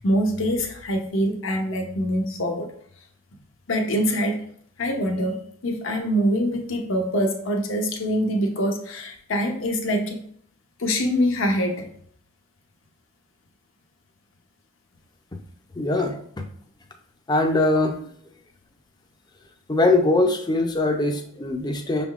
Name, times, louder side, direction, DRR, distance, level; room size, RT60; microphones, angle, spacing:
voice 1, 0.0-2.7 3.7-4.4 4.8-10.2 10.8-11.8, equal, 70° left, 4 dB, 0.8 m, -24 dB
voice 2, 15.8-16.2 17.3-18.0 19.7-22.1, left 2 dB, 20° left, 4 dB, 0.5 m, -21 dB
6.2 x 3.5 x 2.4 m, 0.64 s
head